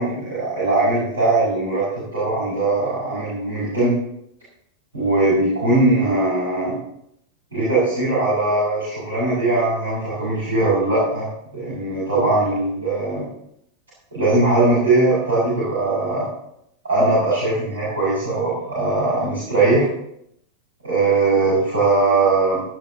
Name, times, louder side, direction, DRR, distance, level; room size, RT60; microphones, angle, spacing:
voice 1, 0.0-4.0 4.9-6.7 7.5-11.3 11.5-13.3 14.1-16.3 16.8-19.9 20.8-22.6, right 2 dB, 75° right, -8 dB, 7.0 m, -20 dB
17.5 x 14.5 x 3.0 m, 0.74 s
figure-of-eight pair, 90°, 0 cm